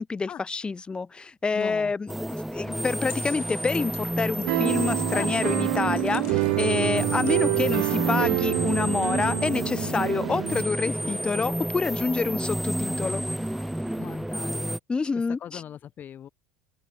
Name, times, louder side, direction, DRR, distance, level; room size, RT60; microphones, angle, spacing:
voice 1, 0.0-2.1 2.5-13.2 14.9-15.6, left 4 dB, 20° left, 2.5 m, -27 dB
voice 2, 1.5-1.9 5.1-5.3 14.0-14.8 15.4-16.3, left 9 dB, 45° left, 6.3 m, -38 dB
sound 1, 2.1-14.8, right 1 dB, 5° right, 2.7 m, -30 dB
sound 2, 2.9-8.4, left 35 dB, 70° left, 7.6 m, -52 dB
sound 3, 4.4-10.6, right 38 dB, 75° right, 1.0 m, -27 dB
open air
hypercardioid pair, 80°, 4 cm